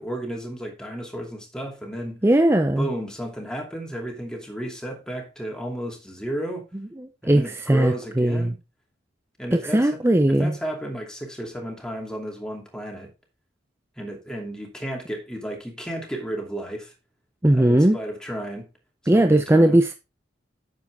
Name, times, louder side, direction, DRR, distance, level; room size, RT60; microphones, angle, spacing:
voice 1, 0.0-2.2 2.8-6.6 7.2-8.5 9.4-9.9 10.3-13.1 14.0-16.9 17.5-18.7 19.0-19.8, right 1 dB, 5° left, 2.6 m, -33 dB
voice 2, 2.2-2.9 7.0-7.4 7.7-8.5 9.5-10.5 17.4-18.0 19.1-19.9, right 1 dB, 15° right, 0.6 m, -18 dB
9.5 x 7.3 x 3.5 m
head